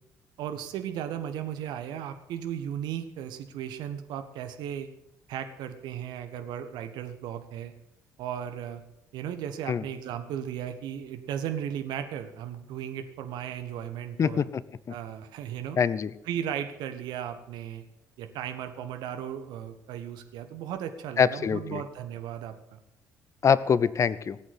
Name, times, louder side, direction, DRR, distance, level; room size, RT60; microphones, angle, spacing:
voice 1, 0.4-4.9 5.3-7.7 8.2-8.8 9.1-14.4 14.9-15.8 16.2-17.8 18.2-22.8, right 9 dB, 60° right, 8 dB, 1.4 m, -36 dB
voice 2, 14.2-14.6 15.8-16.1 21.2-21.8 23.4-24.4, left 7 dB, 35° left, 18 dB, 0.7 m, -24 dB
18.0 x 8.1 x 8.1 m, 0.82 s
figure-of-eight pair, 50°, 8 cm